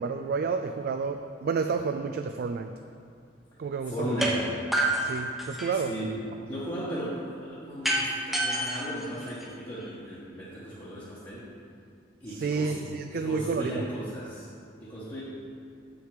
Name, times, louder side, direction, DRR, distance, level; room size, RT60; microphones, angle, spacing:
voice 1, 0.0-2.7 3.6-4.1 5.0-5.9 12.3-13.7 15.2-15.3, right 5 dB, 50° right, 6 dB, 0.3 m, -30 dB
voice 2, 3.9-4.5 5.7-11.5 12.2-12.8 13.1-14.5 14.8-15.2, right 1 dB, 20° left, -10 dB, 1.3 m, -36 dB
sound 1, 4.2-4.3 4.7-5.9 7.8-9.8, right 1 dB, ahead, 0.9 m, -28 dB
7.5 x 6.2 x 4.9 m, 2.4 s
head